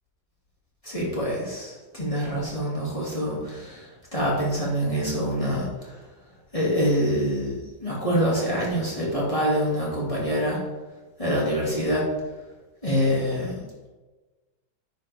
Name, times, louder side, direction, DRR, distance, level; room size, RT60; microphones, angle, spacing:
voice 1, 0.8-6.0 6.5-10.6 11.2-12.1 12.8-13.6, equal, 20° left, -6 dB, 2.4 m, -25 dB
10.5 x 7.7 x 3.5 m, 1.2 s
omnidirectional pair, 1.9 m